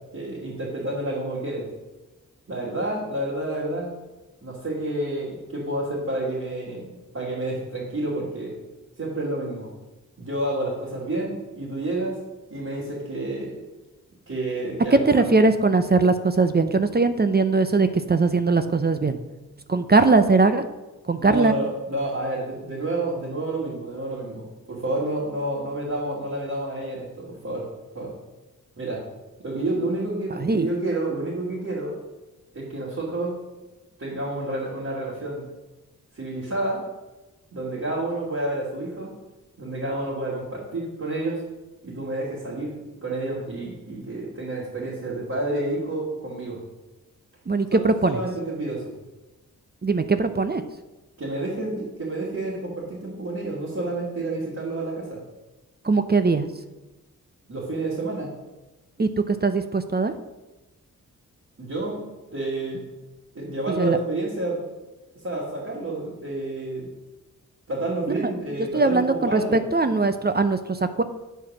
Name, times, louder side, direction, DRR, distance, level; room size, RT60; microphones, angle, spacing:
voice 1, 0.1-1.7 2.5-3.9 4.4-8.6 9.0-9.7 10.2-12.2 12.5-13.6 14.3-15.3 21.2-27.6 27.9-28.1 28.8-29.0 29.4-31.9 32.5-33.3 34.0-35.4 36.1-36.8 37.5-39.1 39.6-41.4 41.8-46.6 47.7-48.9 51.2-55.2 57.5-58.3 61.6-62.0 62.3-62.8 63.3-64.6 65.2-66.9 67.7-69.6, right 2 dB, 45° right, -7 dB, 2.7 m, -29 dB
voice 2, 14.9-19.2 19.7-20.6 21.1-21.5 30.4-30.7 47.5-48.2 49.8-50.6 55.8-56.5 59.0-60.1 63.8-64.0 68.7-71.0, right 3 dB, 25° right, 9 dB, 0.7 m, -20 dB
8.0 x 4.5 x 6.2 m, 1.1 s
cardioid pair, 40°, 35 cm